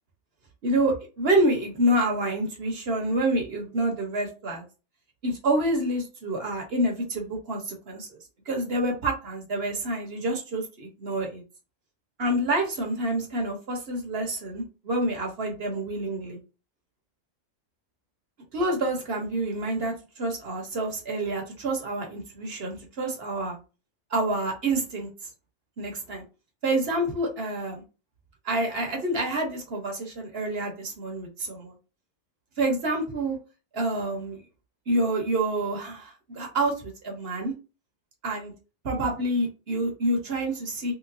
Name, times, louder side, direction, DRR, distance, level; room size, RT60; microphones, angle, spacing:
voice 1, 0.6-4.6 5.2-8.2 8.5-11.4 12.2-16.4 18.5-23.6 24.1-25.1 25.8-26.2 26.6-27.8 28.4-31.7 32.6-33.4 33.7-34.4 34.9-37.5 38.2-38.5 38.8-40.9, right 1 dB, 50° right, 2 dB, 1.1 m, -27 dB
3.2 x 3.0 x 2.6 m, 0.31 s
omnidirectional pair, 1.4 m